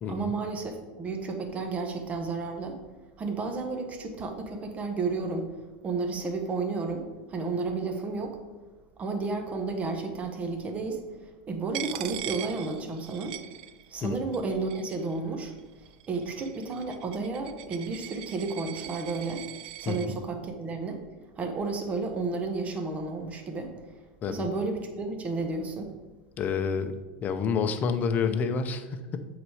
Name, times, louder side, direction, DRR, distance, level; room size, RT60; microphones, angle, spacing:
voice 1, 0.1-2.8 3.2-5.5 5.8-8.4 9.0-11.0 11.5-13.4 13.9-15.5 16.1-19.5 19.8-21.0 21.4-23.7 24.3-25.9, right 3 dB, 30° right, 4 dB, 1.2 m, -32 dB
Coin (dropping), 11.7-14.1 14.3-15.2 15.9-20.1, right 14 dB, 75° right, 0.4 m, -41 dB
voice 2, 26.4-27.0 27.2-29.3, left 5 dB, 35° left, 9 dB, 0.7 m, -29 dB
8.0 x 4.1 x 4.9 m, 1.2 s
supercardioid pair, 120°, 5 cm